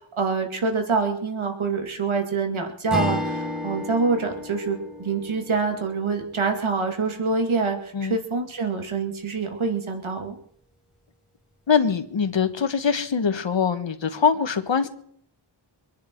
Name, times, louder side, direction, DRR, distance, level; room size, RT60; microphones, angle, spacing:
voice 1, 0.2-10.4, right 4 dB, 85° right, 2.4 m, -26 dB
Strum, 2.9-7.5, left 1 dB, ahead, 4.9 m, -33 dB
voice 2, 11.7-14.9, left 6 dB, 65° left, 1.5 m, -23 dB
25.5 x 10.5 x 4.6 m
wide cardioid pair, 80°, 47 cm